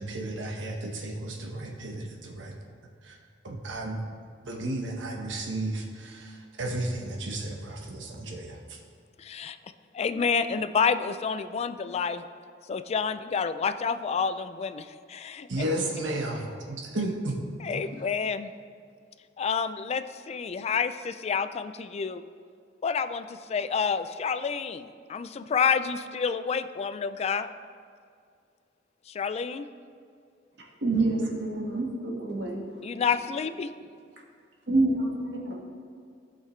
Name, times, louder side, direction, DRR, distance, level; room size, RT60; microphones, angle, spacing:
voice 1, 0.0-2.5 3.0-3.2 3.4-4.0 4.4-8.8 15.5-17.4 17.7-18.1, right 1 dB, 80° right, 0 dB, 1.2 m, -33 dB
voice 2, 9.2-9.6 9.9-12.3 12.7-15.5 17.6-18.5 19.4-22.2 22.8-27.5 29.1-29.7 32.8-33.7, left 6 dB, 35° left, 12 dB, 0.3 m, -29 dB
voice 3, 30.8-32.6 34.7-35.5, right 2 dB, 65° right, -2 dB, 1.7 m, -27 dB
14.5 x 5.7 x 3.2 m, 2.2 s
head